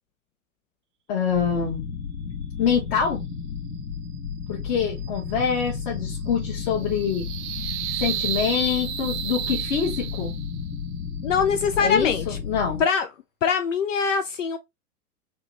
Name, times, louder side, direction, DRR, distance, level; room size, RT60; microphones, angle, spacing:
voice 1, 1.1-1.9 2.6-3.2 4.5-7.3 8.0-10.3 11.8-12.8, left 7 dB, 40° left, 1.2 m, -25 dB
sound 1, 1.3-12.8, left 6 dB, 85° left, 0.8 m, -33 dB
sound 2, 4.7-10.7, right 11 dB, 35° right, 0.5 m, -33 dB
voice 2, 11.2-12.4 12.8-13.1 13.4-14.6, left 6 dB, 55° left, 0.5 m, -23 dB
3.5 x 2.9 x 2.9 m
figure-of-eight pair, 95°, 45 cm